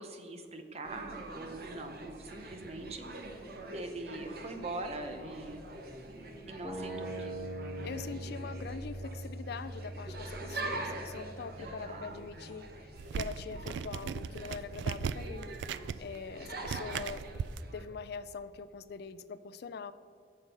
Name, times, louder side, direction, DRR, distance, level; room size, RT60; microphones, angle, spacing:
voice 1, 0.0-3.3 3.7-5.7 6.5-7.5 11.6-12.1, right 2 dB, 35° right, 6 dB, 0.8 m, -43 dB
sound 1, 0.8-17.8, right 2 dB, 60° right, 1.0 m, -45 dB
sound 2, 6.6-12.7, right 1 dB, 15° right, 1.9 m, -42 dB
voice 2, 7.8-15.5 16.0-17.2 17.7-19.9, left 5 dB, 60° left, 13 dB, 0.4 m, -43 dB
sound 3, 13.0-17.6, right 6 dB, 80° right, 0.3 m, -38 dB
7.5 x 6.4 x 5.2 m, 2.3 s
head